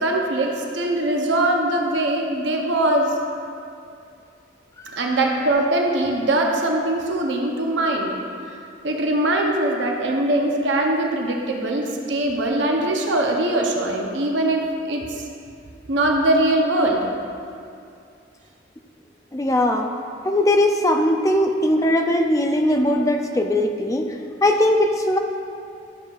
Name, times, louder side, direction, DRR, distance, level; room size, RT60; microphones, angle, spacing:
voice 1, 0.0-3.1 5.0-8.2 8.8-15.2 15.9-17.1, right 1 dB, 75° right, 1 dB, 0.8 m, -21 dB
voice 2, 19.3-19.9 20.2-24.1 24.4-25.2, left 1 dB, 15° left, 4 dB, 0.4 m, -19 dB
12.0 x 6.5 x 2.4 m, 2.5 s
head